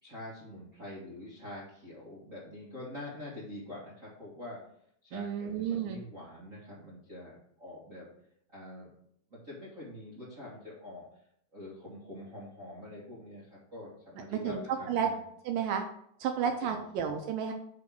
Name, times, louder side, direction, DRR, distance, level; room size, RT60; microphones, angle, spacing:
voice 1, 0.0-4.6 5.0-8.1 8.5-8.9 9.3-11.0 11.5-15.2 16.4-16.8, left 1 dB, 40° right, -7 dB, 1.1 m, -45 dB
voice 2, 5.1-6.0 14.3-14.6 14.9-15.1 15.5-15.8 16.2-17.5, right 8 dB, 80° right, 5 dB, 2.0 m, -31 dB
5.7 x 4.9 x 5.9 m, 0.69 s
omnidirectional pair, 4.6 m